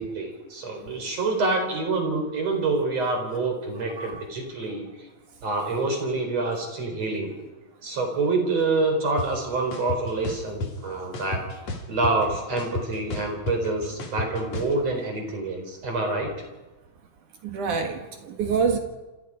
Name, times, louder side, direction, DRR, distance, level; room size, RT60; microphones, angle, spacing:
voice 1, 0.0-5.1 5.4-7.3 7.8-11.4 11.9-16.3, right 3 dB, 30° right, 3 dB, 5.0 m, -27 dB
sound 1, 9.2-9.3 9.7-10.7 11.1-12.3 12.6-14.7, left 3 dB, 40° left, 3.1 m, -31 dB
voice 2, 17.4-18.8, right 5 dB, 65° right, 5 dB, 2.0 m, -26 dB
28.0 x 27.5 x 5.1 m, 1.2 s
omnidirectional pair, 6.0 m